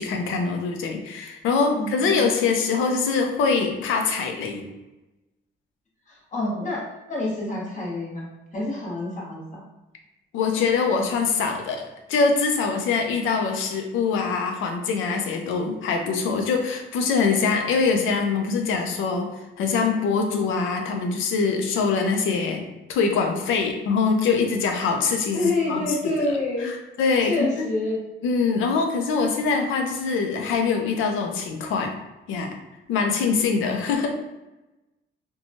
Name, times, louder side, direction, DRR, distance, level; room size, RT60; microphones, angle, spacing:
voice 1, 0.0-4.7 10.3-11.8 12.1-19.3 19.6-22.6 22.9-26.1 26.6-27.7 28.2-32.0 32.3-32.6 32.9-34.2, left 5 dB, 85° left, 4 dB, 0.5 m, -23 dB
voice 2, 1.7-2.5 6.1-9.6 25.3-26.7 27.2-28.0, left 2 dB, 40° left, -4 dB, 1.1 m, -28 dB
2.8 x 2.2 x 2.7 m, 1.0 s
cardioid pair, 90°, 20 cm